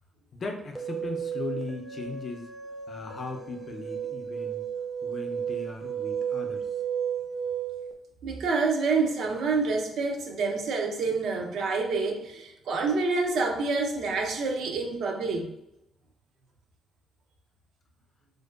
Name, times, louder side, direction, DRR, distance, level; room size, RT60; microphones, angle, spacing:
voice 1, 0.3-2.5 2.9-4.7 5.0-6.7, left 3 dB, 45° left, 0.5 m, -38 dB
sound 1, 0.7-7.9, right 8 dB, 10° right, 0.4 m, -33 dB
voice 2, 8.2-15.5, right 4 dB, 70° right, 0.5 m, -27 dB
2.5 x 2.2 x 2.3 m
cardioid pair, 90°, 0 cm